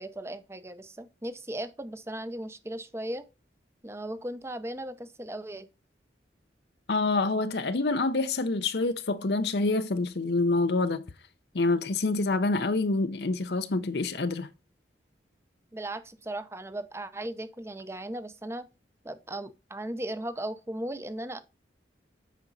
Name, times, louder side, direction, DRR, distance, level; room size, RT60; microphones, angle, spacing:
voice 1, 0.0-3.3 3.8-5.7 15.7-18.7 19.0-21.4, right 1 dB, 15° right, 0.7 m, -37 dB
voice 2, 6.9-11.0 11.5-14.5, left 3 dB, 60° left, 0.6 m, -27 dB
8.4 x 5.1 x 4.0 m
head